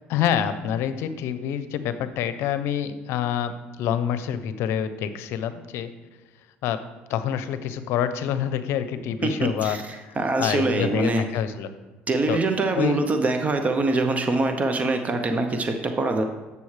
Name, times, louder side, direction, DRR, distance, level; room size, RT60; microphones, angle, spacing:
voice 1, 0.1-5.9 6.6-6.8 7.1-9.8 10.1-11.7 12.3-12.4 12.7-13.0, left 9 dB, 75° left, 12 dB, 0.6 m, -27 dB
voice 2, 9.2-11.3 12.1-16.2, right 2 dB, 35° right, 6 dB, 0.7 m, -24 dB
8.5 x 6.9 x 3.2 m, 1.2 s
supercardioid pair, 80°, 4 cm